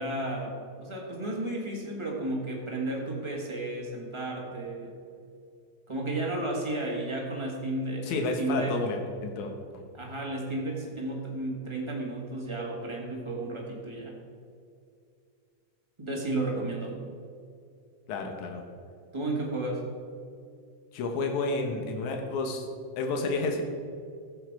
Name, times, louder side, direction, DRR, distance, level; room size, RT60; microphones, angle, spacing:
voice 1, 0.0-5.0 5.9-8.8 9.9-14.2 16.0-17.1 19.1-19.9, right 2 dB, 15° right, -2 dB, 1.1 m, -33 dB
voice 2, 8.1-9.8 18.1-18.6 20.9-22.7 23.0-23.6, left 3 dB, 75° left, 3 dB, 2.6 m, -30 dB
14.5 x 7.8 x 4.7 m, 2.3 s
omnidirectional pair, 3.5 m